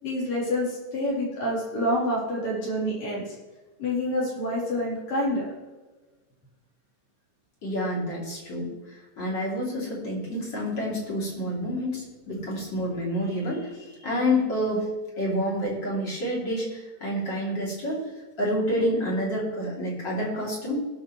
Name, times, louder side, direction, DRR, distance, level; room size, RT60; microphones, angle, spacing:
voice 1, 0.0-3.2 3.8-5.5, left 1 dB, 55° left, -6 dB, 4.8 m, -27 dB
voice 2, 7.6-18.1 18.4-20.8, equal, 35° left, -4 dB, 3.4 m, -28 dB
20.5 x 6.8 x 3.2 m, 1.3 s
omnidirectional pair, 3.6 m